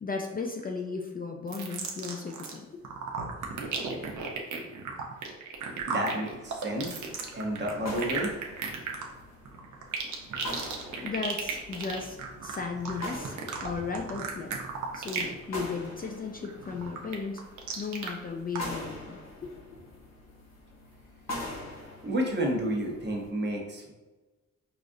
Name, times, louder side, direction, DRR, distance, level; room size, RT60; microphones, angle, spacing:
voice 1, 0.0-2.8 11.0-14.5 14.9-17.4 17.8-19.8, left 4 dB, 30° left, 2 dB, 0.4 m, -36 dB
sound 1, 1.5-2.6 2.8-15.4 15.7-16.0 16.4-18.1 18.5-18.6, right 5 dB, 85° right, 0.7 m, -35 dB
voice 2, 5.9-7.0 7.3-8.3 22.0-23.9, right 1 dB, 35° right, 0 dB, 0.9 m, -30 dB
sound 2, 6.3-23.3, left 1 dB, 60° left, 1.1 m, -44 dB
4.8 x 2.5 x 2.6 m, 1.2 s
cardioid pair, 95°, 29 cm